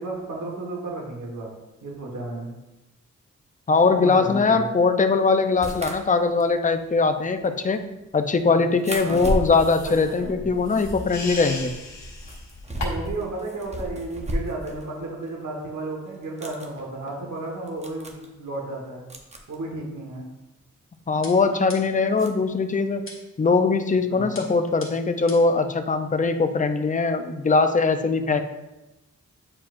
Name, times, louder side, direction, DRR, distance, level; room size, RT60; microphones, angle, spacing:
voice 1, 0.0-1.5 1.8-2.5 3.9-4.7 8.4-8.6 9.0-9.2 9.8-10.5 12.8-19.1 19.5-20.2 24.1-24.3, right 2 dB, 75° right, -2 dB, 1.5 m, -33 dB
voice 2, 3.7-7.8 8.1-11.7 21.1-23.1 23.4-28.4, left 4 dB, 25° left, 8 dB, 0.5 m, -21 dB
sound 1, 5.5-11.0 11.3-14.9 15.2-15.3 16.1-16.7 17.4-17.5 17.7-18.3 19.1-19.6 20.9-21.0 22.2-22.3, equal, 20° right, 0.8 m, -34 dB
sound 2, 9.4-13.3, left 2 dB, 60° left, 1.3 m, -36 dB
sound 3, 21.2-22.1 23.1-23.5 24.3-25.6, left 3 dB, 45° left, 1.6 m, -43 dB
8.6 x 4.7 x 2.5 m, 0.98 s
wide cardioid pair, 105°, 30 cm